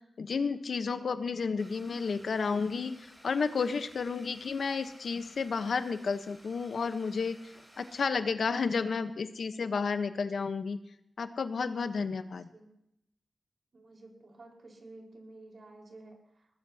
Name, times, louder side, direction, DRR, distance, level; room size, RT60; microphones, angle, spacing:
voice 1, 0.0-2.9 3.2-10.8 11.2-12.5, left 5 dB, 80° left, 9 dB, 1.0 m, -32 dB
Domestic sounds home sounds, 1.6-8.0, equal, 10° right, 5.7 m, -57 dB
voice 2, 13.7-16.5, right 2 dB, 60° right, 0 dB, 4.6 m, -52 dB
20.0 x 20.0 x 2.8 m, 0.81 s
wide cardioid pair, 105°, 0 cm